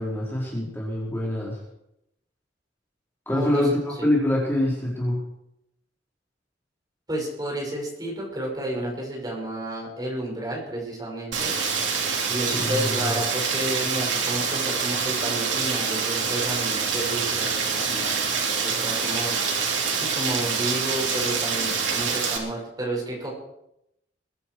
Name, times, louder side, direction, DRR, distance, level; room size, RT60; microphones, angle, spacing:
voice 1, 0.0-1.6 3.3-5.2 12.5-13.2, left 1 dB, 10° left, -5 dB, 4.4 m, -25 dB
voice 2, 3.3-3.7 7.1-11.5 12.3-19.3 19.9-23.3, right 1 dB, 20° right, -2 dB, 6.0 m, -31 dB
Rain, 11.3-22.4, right 5 dB, 90° right, 3.4 m, -26 dB
22.5 x 11.0 x 4.8 m, 0.82 s
head